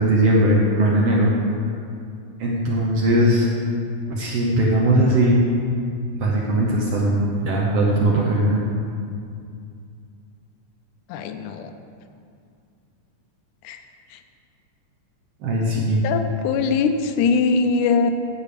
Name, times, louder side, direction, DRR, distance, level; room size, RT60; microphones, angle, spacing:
voice 1, 0.0-1.3 2.4-3.5 4.1-5.4 6.2-8.6 15.4-16.0, right 1 dB, 65° right, -3 dB, 1.6 m, -19 dB
voice 2, 11.1-11.7 13.7-13.8 16.0-18.1, left 5 dB, 85° left, 7 dB, 2.1 m, -21 dB
8.3 x 7.3 x 5.1 m, 2.4 s
omnidirectional pair, 3.6 m